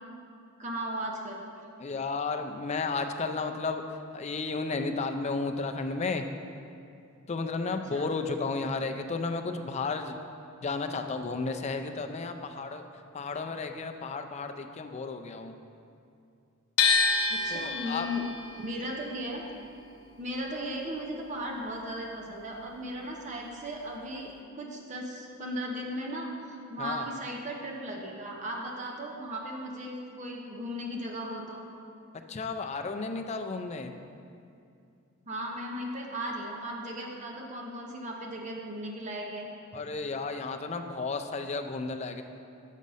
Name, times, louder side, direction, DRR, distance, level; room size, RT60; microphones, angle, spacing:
voice 1, 0.6-1.4 7.9-8.1 17.3-18.3 18.6-19.4 20.2-31.7 35.3-39.5, equal, 35° right, -1 dB, 0.7 m, -36 dB
voice 2, 1.8-3.8 4.1-6.2 7.3-10.2 10.6-12.9 13.1-15.5 17.5-18.1 26.8-27.1 32.3-33.9 39.7-42.2, left 4 dB, 30° left, 6 dB, 0.4 m, -33 dB
sound 1, 16.8-22.8 23.1-24.4, left 4 dB, 90° left, 0.6 m, -30 dB
7.3 x 5.2 x 5.4 m, 2.5 s
head